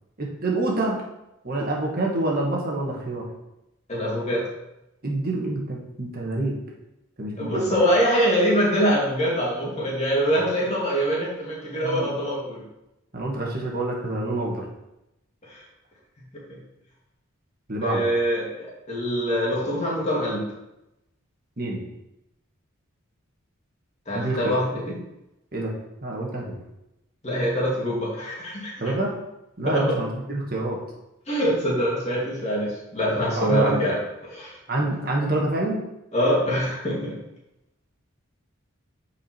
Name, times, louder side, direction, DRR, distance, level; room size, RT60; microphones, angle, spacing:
voice 1, 0.2-1.0 1.4-3.3 5.0-6.6 7.2-7.7 11.8-12.1 13.1-14.6 17.7-18.0 21.6-21.8 24.1-24.6 25.5-25.7 26.0-26.5 28.8-29.1 29.6-30.8 33.4-33.8 34.7-35.8, right 2 dB, 45° right, -2 dB, 1.6 m, -26 dB
voice 2, 3.9-4.4 7.4-12.6 15.5-15.6 17.8-20.5 24.1-25.0 27.2-28.7 29.7-29.8 31.3-34.0 34.3-34.6 36.1-37.2, equal, 30° left, -5 dB, 2.6 m, -24 dB
8.6 x 4.9 x 4.5 m, 0.90 s
head